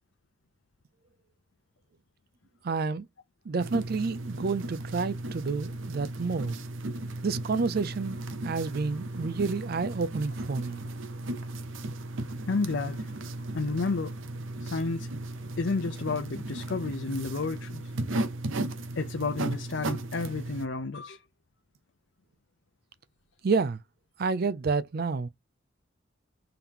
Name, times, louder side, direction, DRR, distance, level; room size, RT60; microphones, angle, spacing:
voice 1, 2.6-3.1 3.5-6.6 7.2-8.2 8.4-10.8 23.4-23.8 24.2-25.3, right 4 dB, 50° right, 0.4 m, -29 dB
sound 1, 3.6-20.7, right 2 dB, 85° right, 0.7 m, -36 dB
voice 2, 12.5-13.0 13.5-14.1 14.6-15.1 15.6-17.9 19.0-21.2, left 3 dB, 65° left, 0.6 m, -31 dB
3.8 x 2.9 x 3.5 m
head